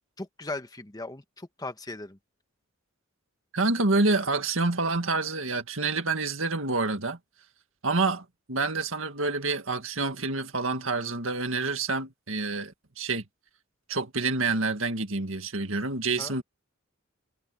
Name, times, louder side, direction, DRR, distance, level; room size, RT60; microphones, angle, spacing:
voice 1, 0.2-2.2 16.2-16.4, left 2 dB, 20° left, 1.3 m, -38 dB
voice 2, 3.5-7.2 7.8-13.2 13.9-16.4, right 3 dB, 70° right, 2.1 m, -28 dB
head